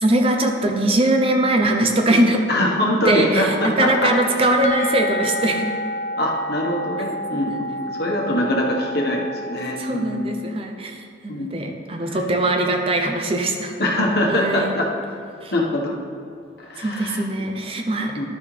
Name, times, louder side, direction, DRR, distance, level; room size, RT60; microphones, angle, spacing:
voice 1, 0.0-2.5 3.0-5.8 7.3-7.6 9.8-11.0 11.2-13.7 14.3-14.7 15.4-15.5 16.8-18.2, right 1 dB, 30° right, 3 dB, 0.6 m, -21 dB
voice 2, 2.5-4.5 6.2-10.3 11.3-11.5 12.0-12.2 13.8-14.9 15.5-15.9 16.6-17.2 18.2-18.3, left 1 dB, 55° left, -2 dB, 1.2 m, -23 dB
sound 1, 4.6-10.2, left 1 dB, 35° left, 0.6 m, -30 dB
12.0 x 6.1 x 3.3 m, 2.5 s
head